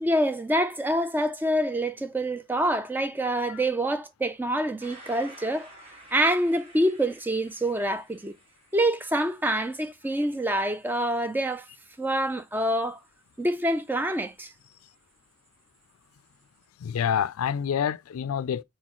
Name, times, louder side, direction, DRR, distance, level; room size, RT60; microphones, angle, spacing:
voice 1, 0.0-5.7 6.1-8.3 8.7-11.7 12.0-13.0 13.4-14.5, right 1 dB, 10° right, 0.4 m, -26 dB
sound 1, 4.8-16.7, right 1 dB, 25° right, 1.7 m, -55 dB
voice 2, 16.8-18.6, left 8 dB, 90° left, 0.3 m, -27 dB
4.1 x 4.0 x 3.0 m
head